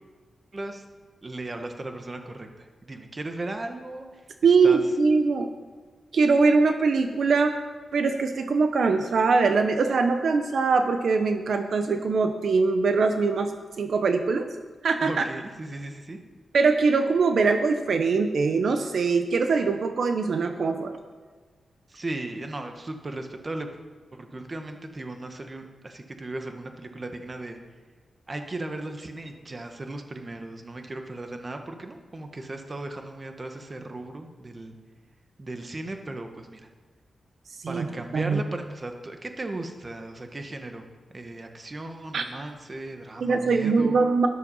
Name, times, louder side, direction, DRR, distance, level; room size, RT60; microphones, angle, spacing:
voice 1, 0.5-0.8 1.2-4.2 4.6-4.8 15.0-16.2 21.9-23.7 24.1-27.6 28.3-34.8 35.4-36.6 37.7-44.0, right 2 dB, 25° right, 5 dB, 1.3 m, -36 dB
voice 2, 4.4-5.5 6.1-7.5 7.9-14.5 14.8-15.2 16.5-20.9 37.6-37.9 38.1-38.4 42.1-42.2 43.2-44.3, right 4 dB, 60° right, 6 dB, 0.9 m, -22 dB
13.0 x 11.5 x 5.6 m, 1.4 s
wide cardioid pair, 150°, 0 cm